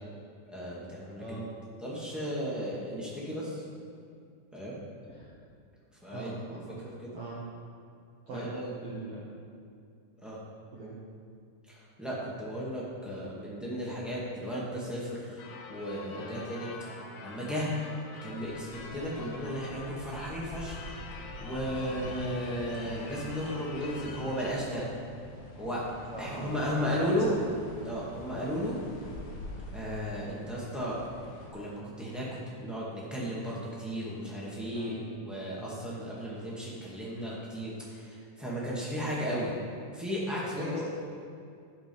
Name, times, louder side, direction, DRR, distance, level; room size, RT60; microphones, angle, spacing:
voice 1, 0.5-1.4 1.8-3.6 4.5-4.7 6.0-6.9 8.3-8.9 10.2-10.4 11.7-15.4 15.7-16.7 17.2-17.7 18.2-20.8 21.4-24.8 25.5-25.8 26.2-27.3 27.8-28.8 29.7-31.0 31.5-32.3 32.6-39.5 39.9-40.9, equal, ahead, -7 dB, 1.0 m, -35 dB
voice 2, 6.1-6.8 7.1-7.4 8.3-8.5 8.8-9.3 10.7-11.0 16.1-16.3 21.8-22.2 26.1-26.8 27.3-27.5 28.4-28.6 34.7-35.0 35.6-35.9 40.5-40.9, right 2 dB, 55° right, -7 dB, 1.8 m, -42 dB
Church bell / Car / Alarm, 15.4-24.5, left 4 dB, 70° left, 1.9 m, -46 dB
sound 1, 18.3-31.5, left 1 dB, 90° left, 3.4 m, -46 dB
15.5 x 5.2 x 5.5 m, 2.4 s
omnidirectional pair, 4.2 m